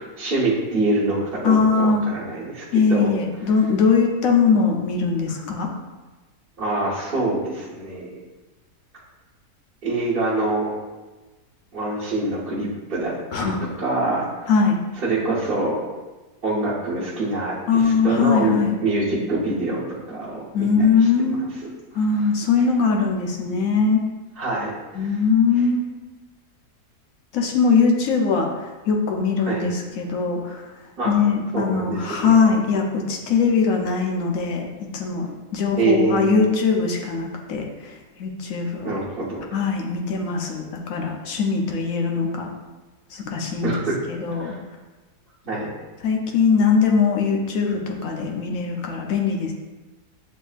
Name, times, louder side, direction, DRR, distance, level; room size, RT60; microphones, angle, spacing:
voice 1, 0.2-3.1 6.6-8.1 9.8-10.7 11.7-13.5 13.8-14.5 15.0-15.8 16.4-20.7 20.9-21.3 24.4-25.1 29.4-29.6 31.0-31.1 31.5-32.4 35.8-36.3 38.8-39.4 43.6-43.9 44.4-44.6 45.4-45.7, right 2 dB, 40° right, -10 dB, 0.9 m, -25 dB
voice 2, 1.4-2.0 2.7-5.7 13.3-13.6 14.5-14.7 17.7-18.8 20.5-21.5 21.9-24.0 24.9-25.8 27.3-30.6 31.0-35.3 35.5-38.9 39.5-42.5 43.1-43.8 44.1-44.5 46.0-49.5, left 5 dB, 65° left, 1 dB, 1.0 m, -21 dB
7.8 x 2.7 x 2.4 m, 1.2 s
omnidirectional pair, 1.8 m